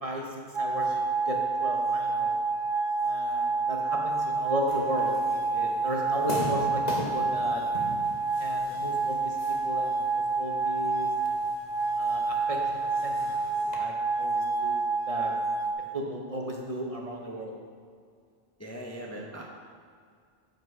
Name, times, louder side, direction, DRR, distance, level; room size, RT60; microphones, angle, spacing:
voice 1, 0.0-2.3 3.0-7.6 8.4-11.1 12.0-13.4 13.8-14.8 15.1-15.3 15.9-17.5, right 1 dB, 35° right, -1 dB, 0.9 m, -35 dB
sound 1, 0.5-15.7, right 3 dB, 60° right, 1.0 m, -28 dB
sound 2, 4.7-13.7, left 1 dB, 45° left, 1.2 m, -41 dB
voice 2, 18.6-19.4, right 1 dB, 15° left, -3 dB, 0.7 m, -39 dB
7.7 x 5.2 x 4.8 m, 2.2 s
omnidirectional pair, 1.0 m